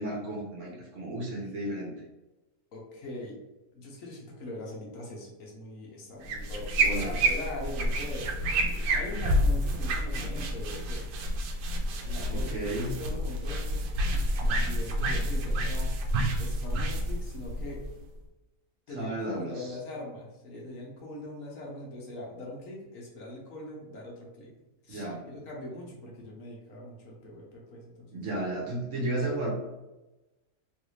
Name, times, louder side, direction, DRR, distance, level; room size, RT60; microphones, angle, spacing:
voice 1, 0.0-1.9 6.8-7.3 12.3-13.0 19.0-19.7 24.9-25.3 28.1-29.5, right 1 dB, 60° right, -2 dB, 1.1 m, -33 dB
voice 2, 2.7-3.4 3.7-11.0 12.0-13.9 14.3-15.9 16.4-17.8 18.9-24.5 24.8-28.2, left 1 dB, 65° left, -2 dB, 1.2 m, -42 dB
sound 1, 6.2-18.2, right 1 dB, 85° right, 1.1 m, -29 dB
3.2 x 2.6 x 3.0 m, 1.0 s
omnidirectional pair, 1.5 m